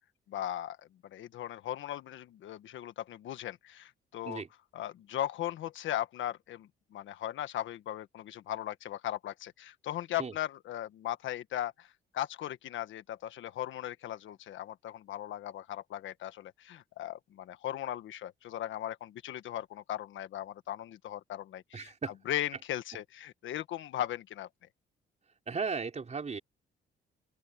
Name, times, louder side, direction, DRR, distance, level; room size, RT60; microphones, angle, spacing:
voice 1, 0.3-4.4 4.7-24.5, left 12 dB, 75° left, 1.4 m, -38 dB
voice 2, 21.7-22.1 25.5-26.4, right 5 dB, 35° right, 4.8 m, -35 dB
open air
cardioid pair, 90°, 20 cm